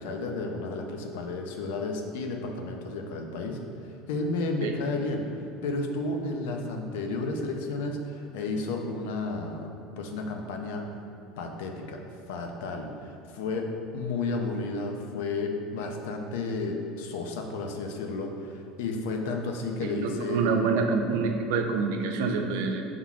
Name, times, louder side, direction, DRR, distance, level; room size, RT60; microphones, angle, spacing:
voice 1, 0.0-10.8 11.4-12.0 12.3-13.7 13.9-20.6, left 3 dB, 90° left, 3 dB, 0.5 m, -32 dB
voice 2, 19.8-22.8, right 4 dB, 75° right, 4 dB, 0.4 m, -27 dB
5.7 x 3.7 x 2.4 m, 2.6 s
cardioid pair, 180°, 0 cm